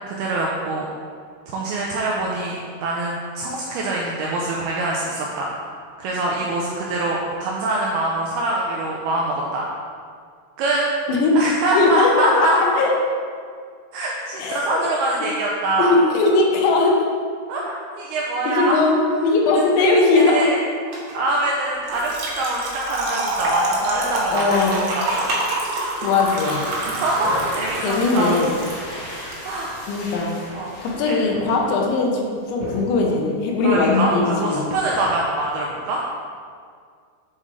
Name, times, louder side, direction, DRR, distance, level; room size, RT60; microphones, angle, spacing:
voice 1, 0.1-0.9 1.5-5.5 6.0-9.7 10.6-10.8 11.4-12.8 13.9-16.0 17.5-18.8 19.8-19.9 20.1-20.6 21.1-24.6 24.9-25.3 26.9-28.4 29.4-29.8 30.5-30.7 33.6-36.0, right 2 dB, 90° right, -3 dB, 2.2 m, -24 dB
voice 2, 11.7-12.9 14.4-14.8 15.8-17.0 18.5-20.5 24.3-24.9 26.0-26.7 27.8-28.5 29.9-30.4 30.8-34.7, left 3 dB, 90° left, 0 dB, 3.3 m, -19 dB
sound 1, 20.9-27.8 28.3-28.5 28.8-29.0 29.7-30.5 31.1-31.8 32.4-33.1 33.7-34.2 34.6-35.4, right 1 dB, 55° right, 1.6 m, -34 dB
Trickle dribble / Fill (with liquid), 21.9-29.4, right 2 dB, 70° right, 3.3 m, -27 dB
sound 2, 26.0-31.7, equal, 60° left, 1.0 m, -36 dB
7.9 x 7.4 x 3.2 m, 2.1 s
omnidirectional pair, 5.2 m